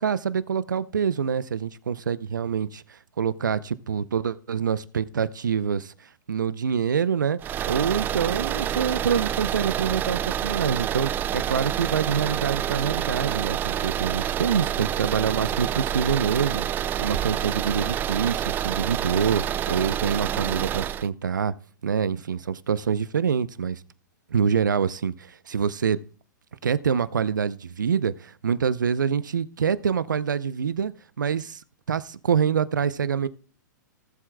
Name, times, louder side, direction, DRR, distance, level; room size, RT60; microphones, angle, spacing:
voice 1, 0.0-7.4 7.7-21.5 21.8-23.8 24.3-26.0 26.6-33.3, right 7 dB, 80° right, 0.7 m, -26 dB
sound 1, 7.4-21.1, right 10 dB, 20° right, 0.3 m, -28 dB
18.0 x 7.7 x 2.3 m
hypercardioid pair, 110°, 10 cm